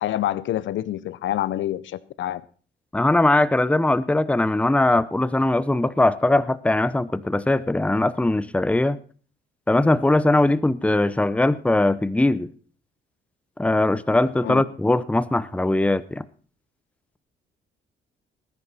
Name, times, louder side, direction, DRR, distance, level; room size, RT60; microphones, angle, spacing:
voice 1, 0.0-2.4 14.4-14.6, left 13 dB, 70° left, 19 dB, 0.7 m, -27 dB
voice 2, 2.9-9.0 9.7-12.5 13.6-16.2, left 2 dB, 5° left, 17 dB, 0.7 m, -20 dB
19.0 x 10.5 x 4.2 m, 0.42 s
cardioid pair, 90°, 20 cm